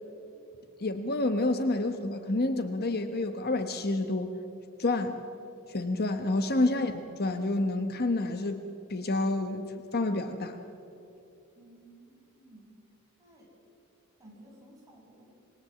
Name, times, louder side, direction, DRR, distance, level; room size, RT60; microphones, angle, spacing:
voice 1, 0.8-4.4 4.8-5.2 5.7-10.6, left 2 dB, 45° left, 8 dB, 1.1 m, -29 dB
voice 2, 11.6-12.8 13.2-13.5 14.2-15.3, right 1 dB, 15° right, -4 dB, 7.3 m, -55 dB
26.5 x 22.5 x 7.7 m, 2.8 s
head